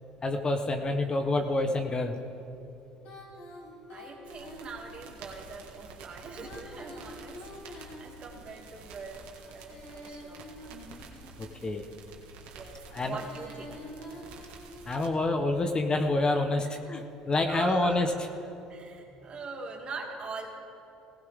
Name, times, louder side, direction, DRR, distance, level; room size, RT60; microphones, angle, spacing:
voice 1, 0.2-2.2 11.4-11.9 12.9-13.2 14.9-18.3, left 2 dB, 30° left, 6 dB, 1.1 m, -28 dB
Female singing, 3.0-5.2 6.3-8.6 9.4-11.5 12.8-15.0, left 1 dB, 70° left, 3.5 m, -47 dB
voice 2, 3.9-10.5 12.5-13.8 16.5-16.7 17.4-18.1 18.7-20.5, right 4 dB, 40° right, 0 dB, 2.5 m, -42 dB
sound 1, 4.2-15.1, right 4 dB, 75° right, 1.9 m, -50 dB
18.0 x 16.0 x 3.7 m, 2.8 s
supercardioid pair, 80°, 3 cm